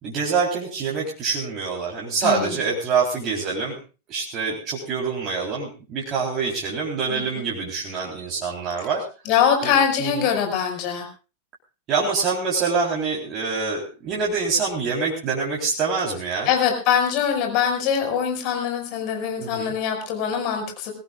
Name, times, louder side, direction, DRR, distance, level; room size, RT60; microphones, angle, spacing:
voice 1, 0.0-3.8 4.1-9.1 9.6-9.7 10.0-10.1 11.9-16.5 19.4-19.7, right 5 dB, 35° right, -3 dB, 3.8 m, -25 dB
voice 2, 2.2-2.6 7.1-7.5 9.2-11.1 16.5-20.9, left 8 dB, 45° left, 4 dB, 5.5 m, -23 dB
22.5 x 17.5 x 2.5 m, 0.33 s
figure-of-eight pair, 90°, 0 cm